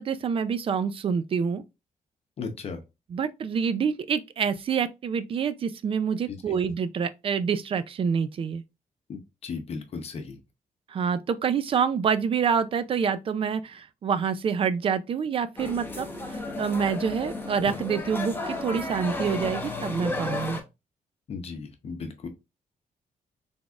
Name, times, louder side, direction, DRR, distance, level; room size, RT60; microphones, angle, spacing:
voice 1, 0.0-1.6 3.1-8.6 10.9-16.1 16.3-20.6, right 6 dB, 40° right, 0.4 m, -27 dB
voice 2, 2.4-2.8 6.3-6.4 9.1-10.4 21.3-22.3, left 5 dB, 45° left, 0.8 m, -36 dB
sound 1, 15.6-20.6, left 2 dB, 15° left, 0.8 m, -33 dB
4.0 x 3.5 x 2.4 m
wide cardioid pair, 160°, 14 cm